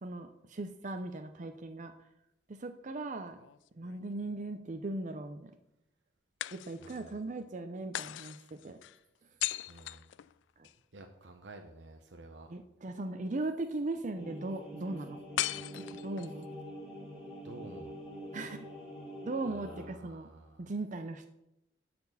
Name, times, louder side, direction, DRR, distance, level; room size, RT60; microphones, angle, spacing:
voice 1, 0.0-1.9 2.5-3.4 3.8-5.5 6.5-8.8 10.6-10.7 12.5-15.2 15.7-16.5 18.3-18.7 19.2-20.3 20.6-21.3, right 2 dB, 45° right, 7 dB, 0.6 m, -38 dB
sound 1, 3.3-4.4 6.4-7.2 7.9-10.8 15.4-16.4, left 14 dB, 85° left, 0.3 m, -39 dB
voice 2, 6.8-7.1 9.7-10.1 10.9-12.5 16.2-16.3 17.4-18.0 19.5-20.7, right 2 dB, 85° right, 4 dB, 0.8 m, -51 dB
sound 2, 14.1-19.8, equal, 5° right, 3.6 m, -45 dB
11.0 x 4.3 x 7.1 m, 0.85 s
head